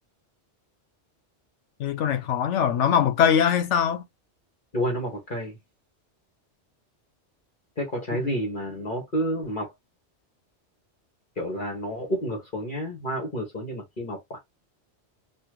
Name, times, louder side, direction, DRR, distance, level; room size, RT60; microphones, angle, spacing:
voice 1, 1.8-4.0, left 8 dB, 80° left, 1.0 m, -22 dB
voice 2, 4.7-5.6 7.8-9.7 11.4-14.4, equal, 45° left, 1.6 m, -30 dB
4.2 x 2.3 x 3.0 m
omnidirectional pair, 1.2 m